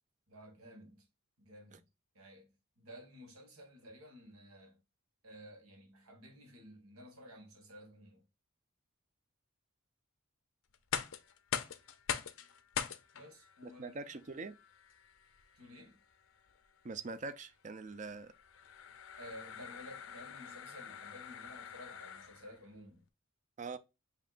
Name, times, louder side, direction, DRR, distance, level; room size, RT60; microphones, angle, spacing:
voice 1, 0.3-1.1 1.4-1.9 2.2-4.8 5.2-8.3 13.1-14.0 15.5-16.0 19.2-23.0, equal, 85° right, 1.7 m, -54 dB
sound 1, 10.7-22.6, left 8 dB, 65° left, 0.5 m, -44 dB
voice 2, 13.8-14.5 16.8-18.3 23.6-23.8, right 4 dB, 35° right, 0.5 m, -43 dB
7.4 x 2.8 x 2.4 m
head